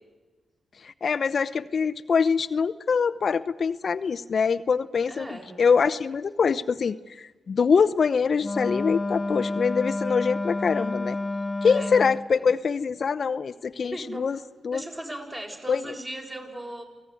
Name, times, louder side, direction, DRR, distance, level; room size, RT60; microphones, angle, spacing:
voice 1, 0.8-11.2 11.6-14.4 14.6-14.8 15.7-15.8, left 5 dB, 60° left, 13 dB, 0.7 m, -24 dB
voice 2, 5.1-5.5 11.6-11.9 12.4-12.5 13.9-14.4 14.7-16.8, right 1 dB, 20° right, 2 dB, 7.3 m, -38 dB
Wind instrument woodwind instrument, 8.4-12.3, left 2 dB, 25° left, 1.3 m, -29 dB
28.0 x 18.0 x 9.8 m, 1.3 s
cardioid pair, 55°, 0 cm